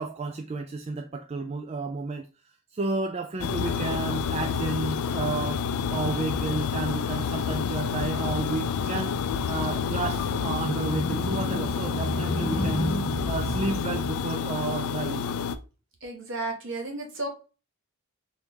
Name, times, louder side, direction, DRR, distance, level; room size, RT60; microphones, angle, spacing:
voice 1, 0.0-2.3 2.7-5.6 5.9-9.2 9.5-13.0 13.3-15.2, right 3 dB, 30° right, 0.3 m, -32 dB
sound 1, 3.4-15.6, left 6 dB, 80° left, 0.4 m, -29 dB
Motorcycle, 7.2-14.3, left 1 dB, 20° left, 0.8 m, -33 dB
voice 2, 16.0-17.3, right 2 dB, 60° right, 1.2 m, -33 dB
4.4 x 2.7 x 3.5 m
head